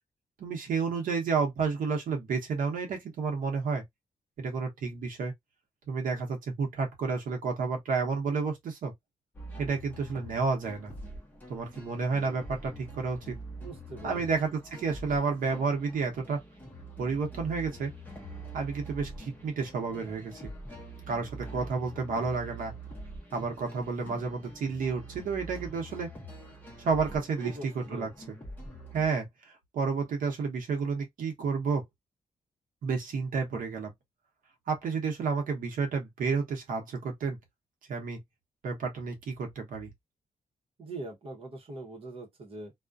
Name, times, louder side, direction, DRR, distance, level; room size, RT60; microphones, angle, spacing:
voice 1, 0.4-3.8 4.4-5.3 5.9-8.9 9.6-10.9 11.5-13.4 14.0-16.4 17.0-17.9 18.5-20.5 21.1-22.7 23.3-26.1 26.8-28.3 28.9-31.8 32.8-33.9 34.7-37.4 37.9-38.2 38.6-39.9, right 5 dB, 85° right, 0.8 m, -31 dB
sound 1, 9.3-29.1, right 1 dB, 15° left, 0.7 m, -45 dB
voice 2, 13.6-14.2 27.4-28.1 40.8-42.7, right 3 dB, 45° right, 0.8 m, -42 dB
2.4 x 2.1 x 2.4 m
wide cardioid pair, 175°, 14 cm